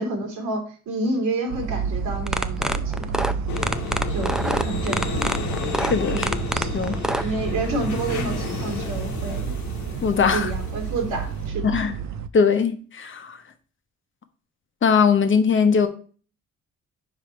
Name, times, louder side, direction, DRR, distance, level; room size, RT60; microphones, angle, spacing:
voice 1, 0.0-3.3 4.1-5.2 6.1-6.3 7.2-9.5 10.3-11.8, right 2 dB, 80° right, 2.4 m, -29 dB
sound 1, 1.5-12.3, right 7 dB, 65° right, 0.6 m, -30 dB
sound 2, 2.2-7.2, equal, ahead, 0.4 m, -25 dB
sound 3, 3.5-11.5, left 5 dB, 70° left, 1.2 m, -32 dB
voice 2, 5.9-6.3 6.7-7.3 10.0-10.5 11.6-12.0 12.3-13.4 14.8-15.9, left 6 dB, 40° left, 1.0 m, -20 dB
5.0 x 4.9 x 4.4 m
cardioid pair, 90°, 30 cm